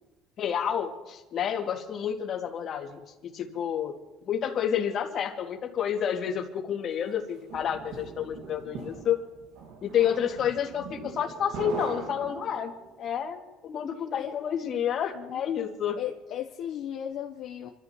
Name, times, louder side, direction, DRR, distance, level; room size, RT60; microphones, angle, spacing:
voice 1, 0.4-3.9 4.3-9.2 9.8-12.7 13.0-16.0, left 9 dB, 45° left, 1 dB, 2.2 m, -29 dB
sound 1, 7.1-12.9, right 4 dB, 85° right, 1.9 m, -41 dB
voice 2, 16.0-17.7, left 10 dB, 60° left, 3 dB, 0.9 m, -36 dB
28.5 x 13.5 x 3.0 m, 1.0 s
cardioid pair, 145°, 0 cm